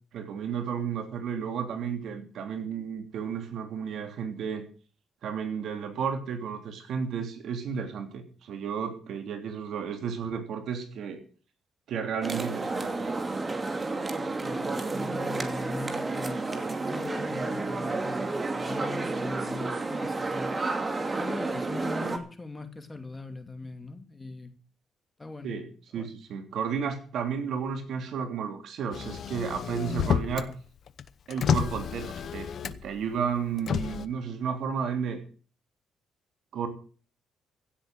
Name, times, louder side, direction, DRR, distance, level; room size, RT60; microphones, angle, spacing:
voice 1, 0.1-4.7 5.2-11.2 11.9-13.1 22.0-22.2 25.4-30.5 31.3-35.2 36.5-36.7, right 7 dB, 70° right, 6 dB, 3.2 m, -33 dB
sound 1, 12.2-22.2, right 3 dB, 25° right, 2.4 m, -31 dB
voice 2, 14.1-16.4 16.9-20.5 21.2-24.5 25.2-25.5 26.0-26.1, left 3 dB, 20° left, 7 dB, 2.6 m, -40 dB
Motor vehicle (road), 28.9-30.5 30.9-33.0 33.6-34.0, left 8 dB, 60° left, 0.9 m, -30 dB
16.0 x 7.8 x 7.7 m, 0.40 s
cardioid pair, 90°, 0 cm